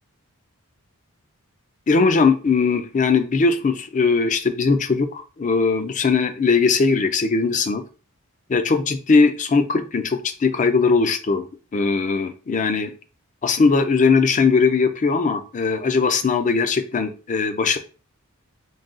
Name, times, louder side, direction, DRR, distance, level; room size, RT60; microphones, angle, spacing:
voice 1, 1.9-7.8 8.5-11.4 11.7-12.9 13.4-17.8, left 4 dB, 35° left, 9 dB, 0.4 m, -19 dB
3.9 x 2.3 x 3.7 m, 0.36 s
head